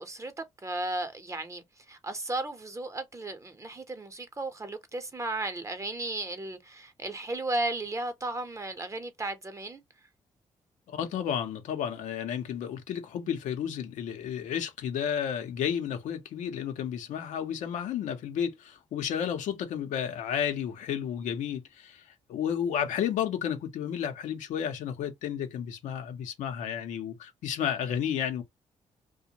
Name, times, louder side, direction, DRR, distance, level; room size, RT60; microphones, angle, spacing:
voice 1, 0.0-9.8, right 2 dB, 25° right, 0.8 m, -35 dB
voice 2, 10.9-28.4, left 8 dB, 80° left, 0.7 m, -32 dB
2.5 x 2.1 x 2.8 m
supercardioid pair, 65°, 12 cm